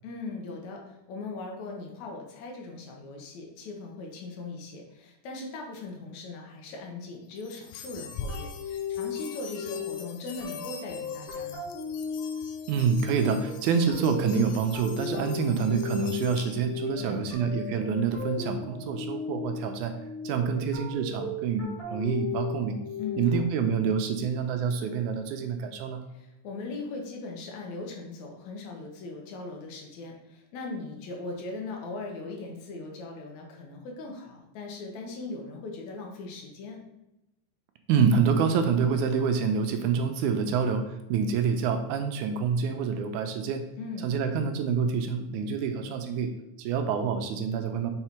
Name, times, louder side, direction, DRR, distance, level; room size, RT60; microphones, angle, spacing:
voice 1, 0.0-11.7 17.0-17.5 23.0-23.4 26.1-36.8 43.8-44.1, left 3 dB, 70° left, 1 dB, 2.3 m, -39 dB
sound 1, 7.4-16.9, left 6 dB, 85° left, 2.1 m, -44 dB
sound 2, 8.3-23.6, left 5 dB, 30° left, 2.3 m, -36 dB
voice 2, 12.7-20.0 20.2-22.8 23.2-26.0 37.9-43.6 44.0-46.3 46.6-47.9, right 6 dB, 80° right, 6 dB, 2.0 m, -27 dB
5.7 x 4.2 x 4.4 m, 0.92 s
omnidirectional pair, 3.6 m